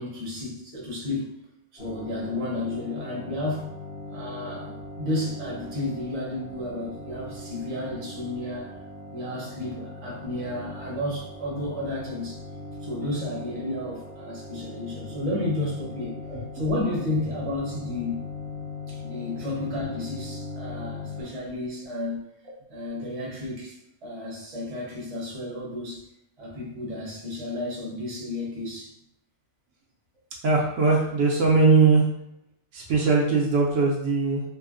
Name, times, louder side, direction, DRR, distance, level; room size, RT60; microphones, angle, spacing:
voice 1, 0.0-1.3 1.7-3.7 4.1-8.8 9.1-12.4 12.8-16.2 16.5-18.2 18.9-22.2 22.7-26.0 26.4-28.9, left 2 dB, 35° right, -4 dB, 0.7 m, -32 dB
sound 1, 1.8-21.2, left 2 dB, 60° left, 1.3 m, -40 dB
voice 2, 30.4-32.1 32.7-34.4, right 4 dB, 70° right, -2 dB, 0.9 m, -20 dB
3.0 x 2.1 x 2.4 m, 0.80 s
omnidirectional pair, 1.3 m